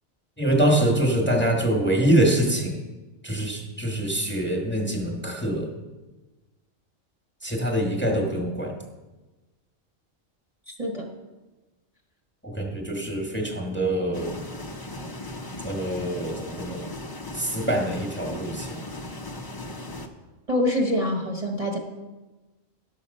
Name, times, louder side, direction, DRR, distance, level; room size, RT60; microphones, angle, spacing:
voice 1, 0.4-2.8 3.2-5.7 7.4-8.8 12.4-14.3 15.6-16.9 17.3-18.8, right 1 dB, 10° left, 1 dB, 1.3 m, -24 dB
voice 2, 10.7-11.1 20.5-21.8, left 1 dB, 30° right, -1 dB, 1.1 m, -25 dB
sound 1, 14.1-20.1, left 1 dB, 25° left, 0.5 m, -37 dB
11.0 x 7.1 x 5.4 m, 1.2 s
omnidirectional pair, 1.4 m